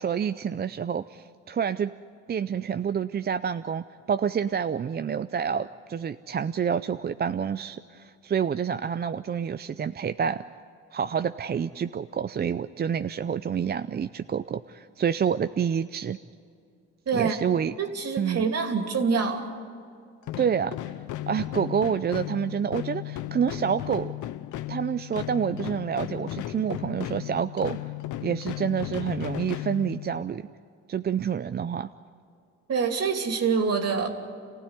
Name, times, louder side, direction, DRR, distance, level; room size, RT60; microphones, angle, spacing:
voice 1, 0.0-1.9 2.3-10.4 10.9-16.2 17.1-17.7 18.2-18.5 20.4-20.7 21.3-24.1 24.7-27.9 28.2-30.4 30.9-31.9, right 7 dB, 35° right, 11 dB, 0.5 m, -28 dB
voice 2, 17.1-17.4 17.8-19.5 32.7-34.1, right 5 dB, 55° right, 4 dB, 2.9 m, -25 dB
sound 1, 20.2-30.4, left 15 dB, 80° left, 0.7 m, -35 dB
27.5 x 16.0 x 9.7 m, 2.4 s
cardioid pair, 90°, 30 cm